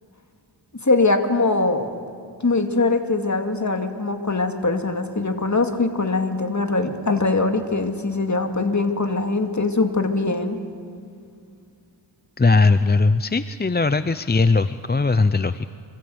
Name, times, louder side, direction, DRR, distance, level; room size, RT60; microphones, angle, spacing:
voice 1, 0.8-1.9 2.4-10.6, left 3 dB, 40° left, 5 dB, 2.4 m, -22 dB
voice 2, 12.4-15.7, left 3 dB, 20° left, 12 dB, 0.6 m, -19 dB
25.0 x 25.0 x 8.0 m, 2.3 s
wide cardioid pair, 60°, 45 cm